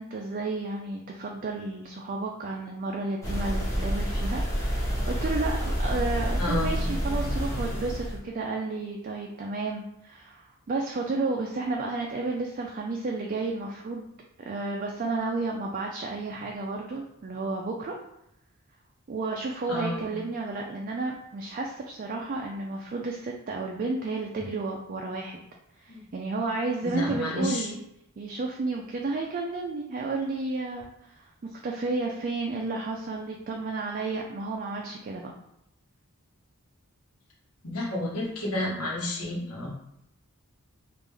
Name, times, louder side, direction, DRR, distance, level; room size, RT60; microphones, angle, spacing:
voice 1, 0.0-14.1 14.4-18.0 19.1-25.4 25.8-27.8 28.2-35.3, right 3 dB, 40° right, 0 dB, 0.4 m, -32 dB
sound 1, 3.2-8.2, equal, 15° left, 0.9 m, -28 dB
voice 2, 6.4-6.9 19.7-20.1 25.9-26.0 26.8-27.7 37.6-39.7, left 1 dB, 90° left, -3 dB, 1.1 m, -30 dB
3.5 x 2.5 x 3.3 m, 0.80 s
head